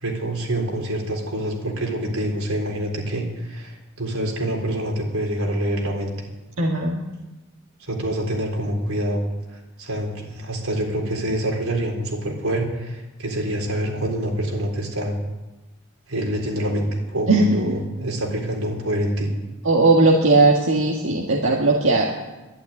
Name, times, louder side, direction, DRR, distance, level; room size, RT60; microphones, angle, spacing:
voice 1, 0.0-6.1 7.8-9.2 9.5-15.2 16.1-19.3, right 1 dB, 90° right, 1 dB, 3.9 m, -26 dB
voice 2, 6.6-7.0 17.3-17.6 19.7-22.1, right 2 dB, 65° right, -1 dB, 1.7 m, -17 dB
12.0 x 11.5 x 9.6 m, 1.1 s
head